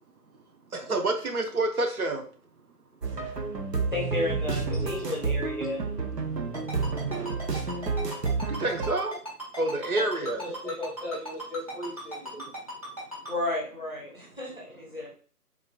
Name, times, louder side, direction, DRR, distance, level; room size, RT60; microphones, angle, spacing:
voice 1, 0.7-2.2 8.6-9.2 9.6-10.5 12.3-12.4, right 2 dB, 65° right, 4 dB, 0.7 m, -28 dB
sound 1, 3.0-8.9, right 4 dB, 90° right, 0.9 m, -30 dB
voice 2, 3.9-5.9 13.3-15.2, left 2 dB, 35° left, -3 dB, 0.7 m, -32 dB
Ringtone, 6.5-13.3, equal, 25° right, 1.0 m, -37 dB
voice 3, 9.9-12.4, left 1 dB, 5° right, -8 dB, 1.2 m, -37 dB
3.6 x 2.6 x 2.4 m, 0.42 s
figure-of-eight pair, 165°, 48 cm